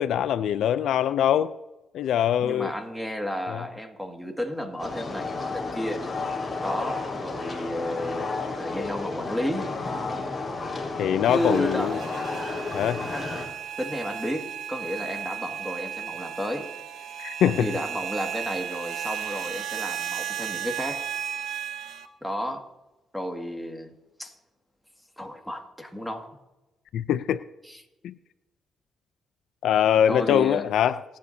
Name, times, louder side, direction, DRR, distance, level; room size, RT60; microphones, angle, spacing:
voice 1, 0.0-1.5 1.9-2.7 3.5-3.6 11.0-12.0 12.7-13.0 17.2-17.7 26.9-27.4 28.0-28.1 29.6-31.0, left 10 dB, 75° left, 13 dB, 0.5 m, -23 dB
voice 2, 2.4-6.0 6.6-9.8 11.3-12.1 13.1-13.3 13.8-16.7 17.4-21.1 22.2-22.7 23.1-23.9 24.2-24.4 25.2-26.3 27.6-27.8 30.1-30.6, equal, ahead, 2 dB, 2.1 m, -32 dB
sound 1, 4.8-13.4, left 3 dB, 25° left, 3.8 m, -32 dB
sound 2, 11.2-22.1, right 9 dB, 75° right, 1.0 m, -35 dB
28.0 x 9.5 x 2.8 m, 1.0 s
cardioid pair, 90°, 0 cm